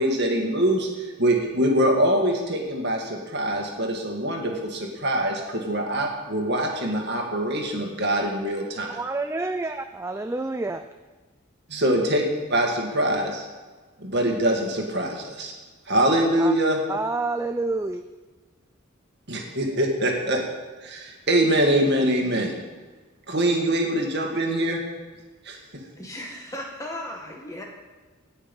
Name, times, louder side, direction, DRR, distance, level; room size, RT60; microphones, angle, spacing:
voice 1, 0.0-9.0 11.7-12.2 12.5-13.4 14.0-15.5 15.9-16.8 19.3-20.4 20.8-22.5 23.3-24.8 25.4-25.6, right 1 dB, 50° right, 1 dB, 2.1 m, -24 dB
voice 2, 8.9-10.9 16.4-16.5 16.9-18.0, right 3 dB, 10° right, 8 dB, 0.3 m, -28 dB
voice 3, 26.0-27.6, left 1 dB, 15° left, 0 dB, 1.8 m, -36 dB
17.5 x 6.6 x 5.5 m, 1.3 s
head